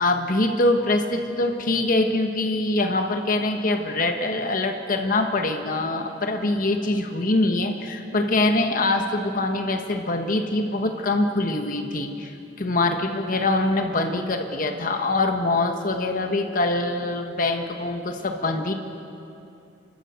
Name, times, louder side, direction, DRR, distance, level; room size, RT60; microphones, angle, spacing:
voice 1, 0.0-12.3 12.6-18.7, left 2 dB, 50° left, 5 dB, 1.3 m, -24 dB
29.5 x 12.5 x 8.0 m, 2.7 s
head